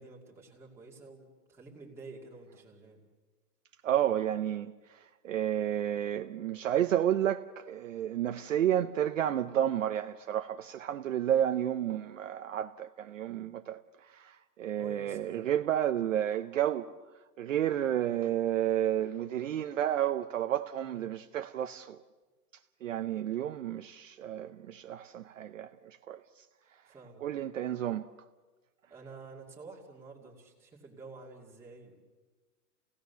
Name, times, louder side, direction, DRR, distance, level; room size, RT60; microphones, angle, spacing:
voice 1, 0.0-3.0 14.8-15.4 20.8-21.1 26.9-27.2 28.9-32.1, right 3 dB, 5° right, 2.0 m, -50 dB
voice 2, 3.8-4.7 5.2-13.8 14.1-16.9 17.4-22.0 22.8-25.7 26.1-26.2 27.2-28.0, right 11 dB, 50° right, 0.7 m, -31 dB
29.0 x 17.0 x 6.8 m
hypercardioid pair, 175°, 49 cm